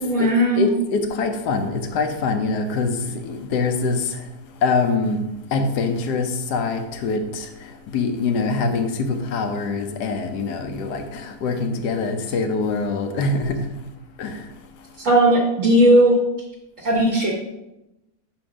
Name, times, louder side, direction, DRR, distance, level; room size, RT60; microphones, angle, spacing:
voice 1, 0.0-0.7 15.0-16.2 16.8-17.3, right 1 dB, 55° right, -2 dB, 1.3 m, -16 dB
voice 2, 0.6-4.0 4.6-5.2 5.5-7.5 7.9-13.6 14.2-14.3, left 4 dB, 90° left, 6 dB, 1.3 m, -24 dB
6.2 x 4.4 x 4.9 m, 0.93 s
omnidirectional pair, 1.7 m